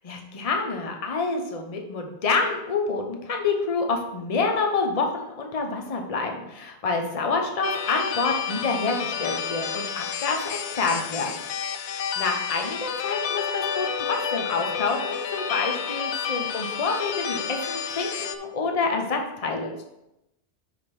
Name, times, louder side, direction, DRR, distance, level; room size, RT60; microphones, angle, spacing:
voice 1, 0.0-11.3 11.8-19.8, left 4 dB, 35° left, 3 dB, 0.9 m, -27 dB
sound 1, 7.6-18.4, left 7 dB, 90° left, 0.9 m, -30 dB
5.9 x 5.1 x 5.3 m, 0.88 s
omnidirectional pair, 1.1 m